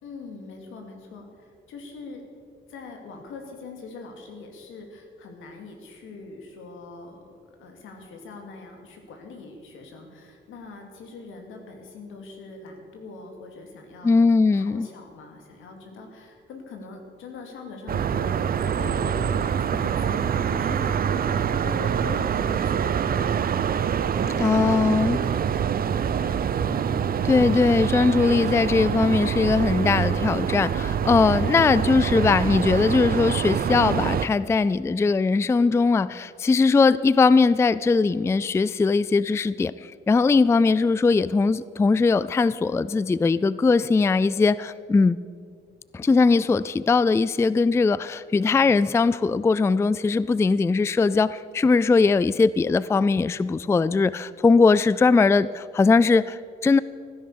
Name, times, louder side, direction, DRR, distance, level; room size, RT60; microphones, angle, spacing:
voice 1, 0.0-2.2 2.7-23.6 24.1-26.9, left 3 dB, 85° left, 3 dB, 2.7 m, -42 dB
voice 2, 14.0-14.9 24.4-25.2 27.2-45.2 45.9-56.8, left 4 dB, 15° left, 18 dB, 0.3 m, -20 dB
sound 1, 17.9-34.3, right 8 dB, 50° right, 0.7 m, -25 dB
16.0 x 10.5 x 6.8 m, 2.1 s
cardioid pair, 90°, 20 cm